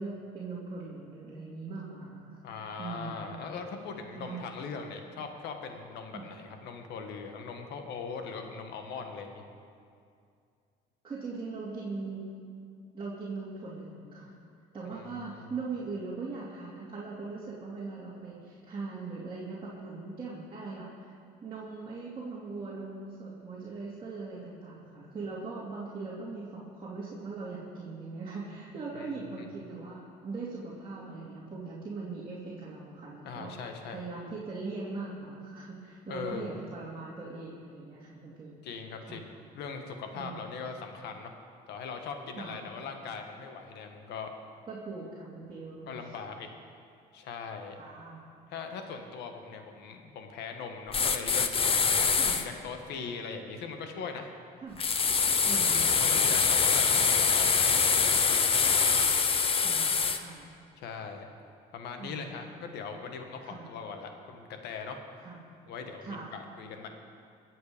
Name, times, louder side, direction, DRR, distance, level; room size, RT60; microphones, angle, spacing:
voice 1, 0.0-2.4 2.8-3.4 4.2-4.5 6.1-6.2 11.0-12.3 12.9-14.3 14.7-21.1 21.4-33.6 33.9-38.6 39.1-39.2 40.1-40.5 42.4-42.7 44.7-46.0 47.8-48.2 52.2-52.4 54.6-54.8 55.4-56.4 57.0-57.1 59.6-60.5 62.0-62.7 63.4-63.7 65.2-65.4 66.0-66.3, right 3 dB, 30° right, -7 dB, 2.7 m, -40 dB
voice 2, 2.4-9.4 15.3-15.5 29.0-29.1 29.4-29.5 33.2-34.0 36.1-36.6 38.6-41.3 41.7-44.3 45.9-46.5 47.1-47.8 48.5-54.3 55.6-58.9 60.8-61.3 61.7-65.3 65.7-66.9, left 5 dB, 80° left, 5 dB, 1.6 m, -40 dB
sound 1, 50.9-52.4 54.8-60.2, left 5 dB, 35° left, 0.9 m, -24 dB
22.5 x 8.0 x 5.1 m, 2.3 s
cardioid pair, 110°, 17 cm